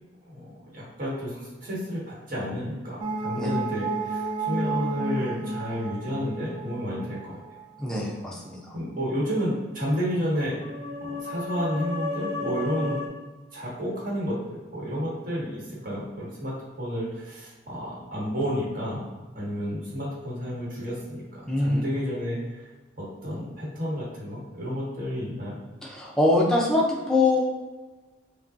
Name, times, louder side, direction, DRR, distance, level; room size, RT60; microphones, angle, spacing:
voice 1, 0.3-7.6 8.7-10.6 11.0-13.0 13.5-19.0 19.3-22.7 23.0-25.6, equal, 45° right, -6 dB, 1.4 m, -31 dB
sound 1, 3.0-7.8 10.4-13.1, right 1 dB, 85° right, 0.6 m, -32 dB
voice 2, 7.8-8.8 21.5-21.8 25.8-27.4, left 2 dB, 5° left, -4 dB, 0.6 m, -23 dB
5.3 x 2.3 x 2.7 m, 1.3 s
head